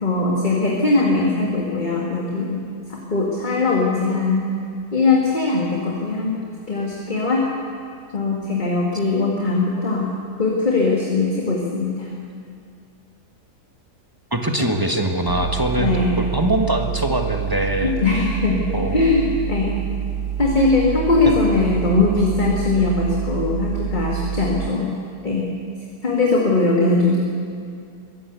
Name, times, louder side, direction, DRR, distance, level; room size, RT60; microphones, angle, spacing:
voice 1, 0.0-4.5 4.9-6.3 6.7-7.5 8.1-12.1 15.8-16.1 17.8-19.8 20.4-25.0 25.2-25.6 26.0-27.2, left 3 dB, 30° left, -2 dB, 2.2 m, -20 dB
voice 2, 14.3-18.0 18.7-19.0, right 1 dB, 15° right, 4 dB, 1.4 m, -22 dB
sound 1, 15.3-24.7, right 9 dB, 70° right, 1.1 m, -27 dB
22.5 x 14.5 x 8.3 m, 2.4 s
omnidirectional pair, 1.7 m